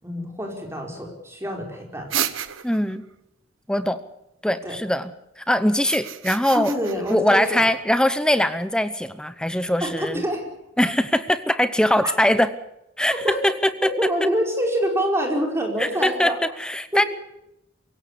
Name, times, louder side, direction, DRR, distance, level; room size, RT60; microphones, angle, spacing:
voice 1, 0.0-2.2 4.6-4.8 6.5-7.7 9.8-10.5 12.0-12.1 13.2-13.4 13.8-16.4 16.9-17.1, equal, 15° right, 1 dB, 4.9 m, -26 dB
sound 1, 2.1-3.0 5.7-7.1, right 10 dB, 90° right, 1.3 m, -30 dB
voice 2, 2.6-3.0 3.7-4.0 4.4-6.7 7.1-10.2 10.8-12.5 13.0-13.1 13.4-13.9 15.8-17.0, left 1 dB, 5° left, 13 dB, 0.8 m, -21 dB
24.5 x 16.5 x 8.4 m, 0.85 s
head